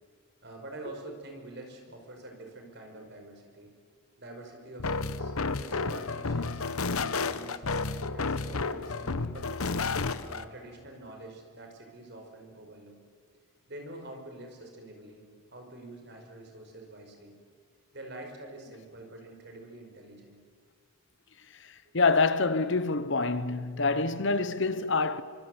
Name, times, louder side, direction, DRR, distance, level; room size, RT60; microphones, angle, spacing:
voice 1, 0.4-3.7 4.2-6.6 7.1-9.6 10.2-13.0 13.3-13.4 13.7-15.2 15.5-17.4 17.9-20.4 21.9-22.0, right 2 dB, 50° right, 5.2 m, -46 dB
sound 1, 4.8-10.4, left 4 dB, 90° left, 1.1 m, -31 dB
voice 2, 21.9-25.2, left 3 dB, 60° left, 1.1 m, -26 dB
25.5 x 24.5 x 8.0 m
head